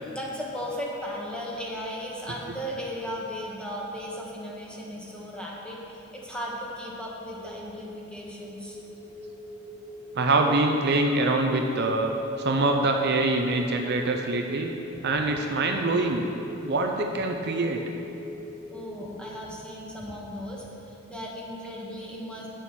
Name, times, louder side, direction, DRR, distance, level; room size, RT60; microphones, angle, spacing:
voice 1, 0.1-8.8 18.7-22.5, equal, 5° left, -4 dB, 1.5 m, -36 dB
sound 1, 7.4-19.4, left 1 dB, 15° right, 0.7 m, -42 dB
voice 2, 10.1-12.1 12.4-14.7 15.0-16.3 16.6-17.8, right 2 dB, 55° right, 3 dB, 0.6 m, -24 dB
9.2 x 7.0 x 6.1 m, 2.8 s
head